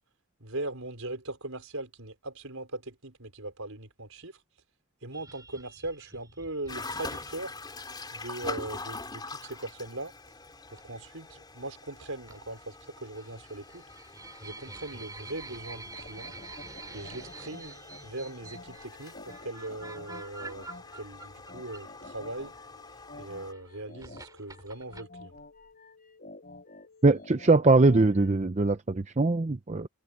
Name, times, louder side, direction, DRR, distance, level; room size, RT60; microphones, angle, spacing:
voice 1, 0.4-4.4 5.0-7.5 8.1-10.1 10.7-13.8 14.4-16.3 16.9-22.6 23.2-25.4, right 2 dB, 70° right, 4.9 m, -40 dB
sound 1, 5.1-7.8 9.4-9.6 10.8-11.1 12.3-12.8 13.2-22.3 23.3-25.0, right 3 dB, 15° right, 7.0 m, -47 dB
sound 2, 6.7-23.5, left 3 dB, 20° left, 3.6 m, -44 dB
sound 3, 15.9-28.3, left 2 dB, 40° left, 6.3 m, -50 dB
voice 2, 27.0-29.9, right 3 dB, 30° right, 0.6 m, -22 dB
head